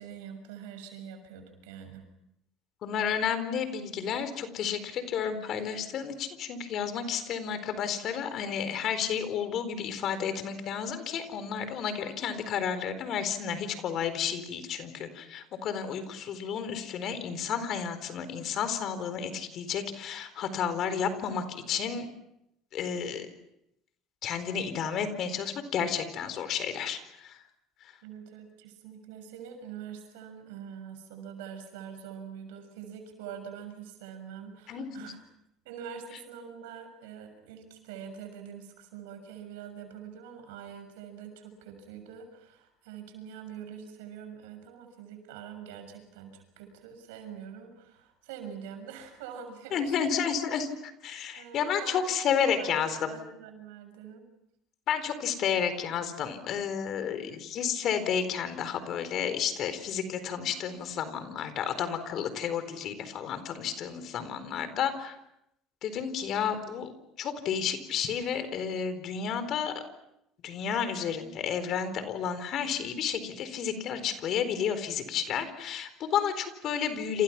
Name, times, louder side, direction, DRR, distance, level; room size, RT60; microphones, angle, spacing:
voice 1, 0.0-2.0 28.0-35.2 35.6-50.1 51.4-52.0 52.3-54.2, right 7 dB, 85° right, 7 dB, 6.6 m, -44 dB
voice 2, 2.8-22.1 22.7-23.3 24.2-27.4 34.7-35.1 49.7-50.7 51.0-52.9 54.9-65.2 65.8-66.9 67.2-69.7 70.4-77.2, left 7 dB, 55° left, 11 dB, 4.2 m, -31 dB
28.5 x 28.0 x 6.1 m, 0.80 s
supercardioid pair, 90°, 0 cm